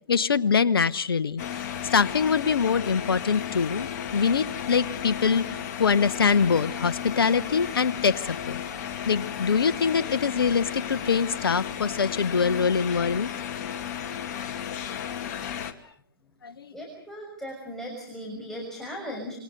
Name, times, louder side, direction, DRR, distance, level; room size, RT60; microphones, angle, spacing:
voice 1, 0.1-5.4 5.8-8.6 9.0-13.3 16.4-16.7, left 6 dB, 75° left, 16 dB, 1.1 m, -24 dB
sound 1, 1.4-15.7, left 9 dB, 45° left, 2.3 m, -34 dB
voice 2, 16.7-19.4, equal, 5° left, -1 dB, 6.3 m, -37 dB
27.0 x 24.5 x 6.8 m, 0.65 s
hypercardioid pair, 120°, 12 cm